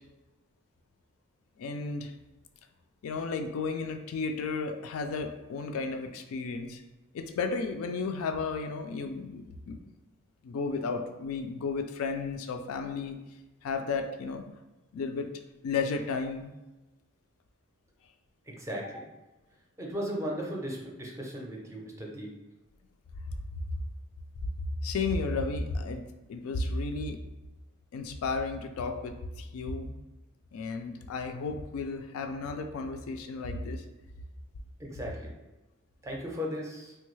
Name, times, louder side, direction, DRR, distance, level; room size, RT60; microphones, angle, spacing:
voice 1, 1.6-2.1 3.0-6.8 7.1-9.8 10.4-13.2 13.6-14.4 14.9-15.3 15.6-16.5 23.7-23.8 24.8-26.0 26.3-27.2 27.9-29.9 30.5-33.8, left 4 dB, 70° left, 6 dB, 0.3 m, -33 dB
voice 2, 18.4-19.1 19.8-22.3 34.8-35.4 36.0-37.0, equal, 15° right, -2 dB, 0.5 m, -36 dB
3.3 x 2.2 x 3.1 m, 1.1 s
head